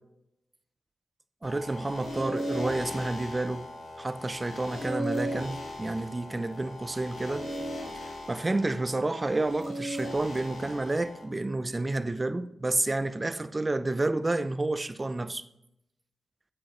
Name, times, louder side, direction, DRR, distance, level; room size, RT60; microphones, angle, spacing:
sound 1, 1.4-11.2, equal, 85° left, 2.1 m, -37 dB
voice 1, 1.4-3.6 4.0-7.5 7.9-15.4, right 2 dB, 30° right, 0.6 m, -30 dB
8.8 x 8.6 x 3.1 m
cardioid pair, 50°, 0 cm